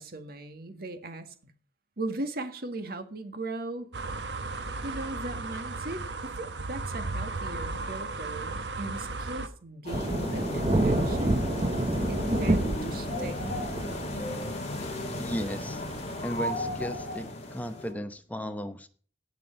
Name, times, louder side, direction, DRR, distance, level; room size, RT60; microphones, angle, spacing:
voice 1, 0.0-1.5 2.0-3.9 4.8-11.5 12.1-13.4, right 2 dB, 60° right, 1.7 m, -38 dB
sound 1, 3.9-9.5, right 3 dB, 75° right, 1.3 m, -35 dB
sound 2, 9.8-17.9, left 1 dB, 40° left, 3.0 m, -34 dB
Thunder / Rain, 9.9-16.2, right 1 dB, 35° right, 1.1 m, -29 dB
voice 2, 15.2-15.8 16.2-18.9, equal, 10° left, 0.9 m, -35 dB
16.5 x 6.1 x 5.7 m
head